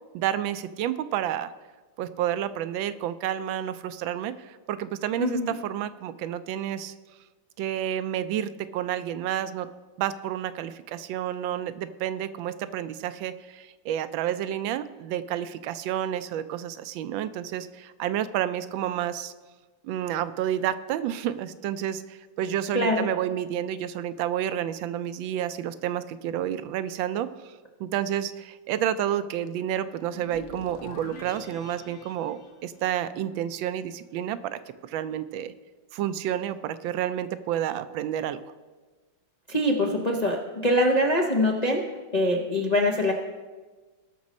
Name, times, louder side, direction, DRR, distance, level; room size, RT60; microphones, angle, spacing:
voice 1, 0.1-1.5 2.0-6.9 7.6-9.7 10.0-19.3 19.8-27.5 27.8-35.5 35.9-38.4, right 11 dB, 85° right, 13 dB, 1.3 m, -30 dB
voice 2, 5.2-5.6 22.7-23.1 39.5-41.8 42.1-43.1, left 1 dB, 50° left, 0 dB, 0.5 m, -23 dB
sound 1, 30.1-33.4, left 3 dB, 90° left, 1.9 m, -44 dB
18.5 x 6.2 x 4.2 m, 1.3 s
omnidirectional pair, 2.1 m